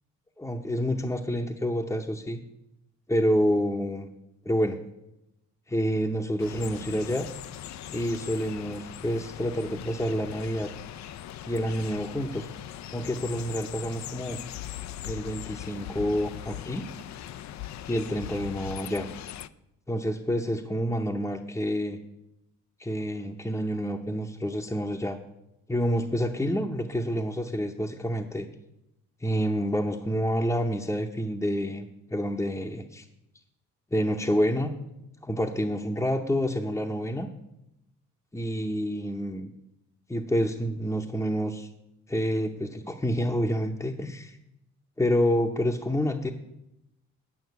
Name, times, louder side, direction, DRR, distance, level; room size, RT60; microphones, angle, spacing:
voice 1, 0.4-2.4 3.1-4.1 4.4-4.8 5.7-7.3 7.9-10.7 11.5-12.5 12.9-14.4 15.1-16.9 17.9-19.1 19.9-22.0 22.8-25.2 25.7-28.5 29.2-33.1 33.9-34.7 35.2-37.3 38.3-39.5 40.1-41.7 42.1-44.4 45.0-46.3, equal, 10° left, 0 dB, 0.8 m, -28 dB
sound 1, 6.4-19.5, left 12 dB, 65° left, 0.5 m, -40 dB
9.5 x 5.7 x 8.0 m, 0.88 s
cardioid pair, 90°, 30 cm